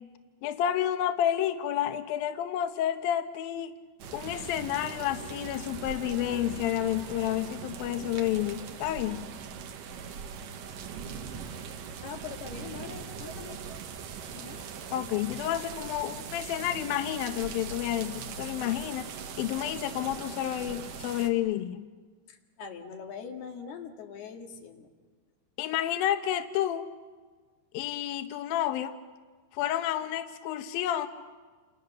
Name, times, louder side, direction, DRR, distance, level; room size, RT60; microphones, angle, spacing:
voice 1, 0.4-3.8 4.1-9.3 14.9-19.1 19.4-21.9 25.6-26.9 27.7-29.0 29.5-31.1, left 11 dB, 75° left, 2.2 m, -30 dB
sound 1, 4.0-21.3, right 6 dB, 60° right, 2.3 m, -41 dB
voice 2, 12.0-13.6 14.3-14.6 22.3-24.9, left 6 dB, 60° left, 3.9 m, -42 dB
29.0 x 29.0 x 6.8 m
omnidirectional pair, 5.4 m